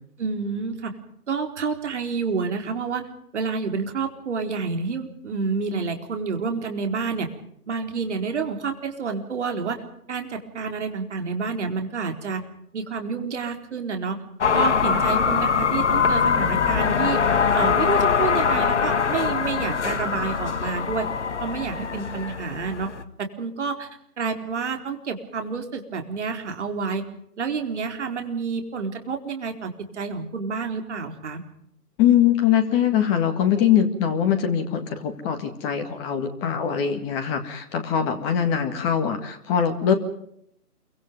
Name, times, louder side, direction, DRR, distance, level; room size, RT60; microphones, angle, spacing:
voice 1, 0.2-1.0 1.3-3.1 3.3-7.3 7.7-9.8 10.1-12.4 12.7-14.2 14.5-17.2 17.5-21.1 21.4-22.9 23.2-23.9 24.2-27.0 27.4-31.4, right 5 dB, 45° right, 5 dB, 4.2 m, -29 dB
sound 1, 14.4-23.0, left 6 dB, 45° left, 1.6 m, -22 dB
voice 2, 32.0-39.9, left 9 dB, 15° left, 6 dB, 1.9 m, -22 dB
28.5 x 24.5 x 5.3 m, 0.72 s
figure-of-eight pair, 150°, 47 cm